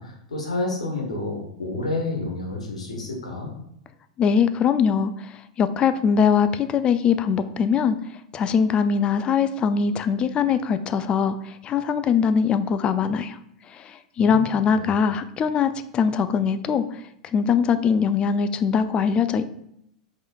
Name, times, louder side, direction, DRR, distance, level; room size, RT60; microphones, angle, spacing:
voice 1, 0.0-3.5 14.2-14.5 14.7-14.9, left 2 dB, 80° left, 1 dB, 1.2 m, -30 dB
voice 2, 4.2-8.0 8.3-13.4 13.7-16.8 17.3-19.5, left 6 dB, 30° left, 12 dB, 0.3 m, -22 dB
5.0 x 3.8 x 2.3 m, 0.75 s
hypercardioid pair, 95°, 3 cm